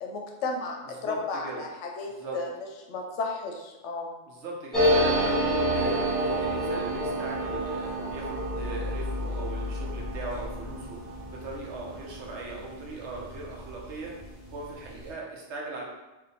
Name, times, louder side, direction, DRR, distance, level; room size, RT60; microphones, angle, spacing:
voice 1, 0.0-2.5 2.9-4.1, left 3 dB, 75° left, 1 dB, 0.9 m, -33 dB
voice 2, 1.0-1.6 2.1-2.4 4.3-5.4 5.7-14.1 14.5-15.8, right 3 dB, 70° right, -2 dB, 1.0 m, -39 dB
sound 1, 4.7-13.9 14.2-14.3 14.5-15.1, equal, ahead, 0.9 m, -29 dB
2.7 x 2.5 x 4.0 m, 1.1 s
omnidirectional pair, 1.3 m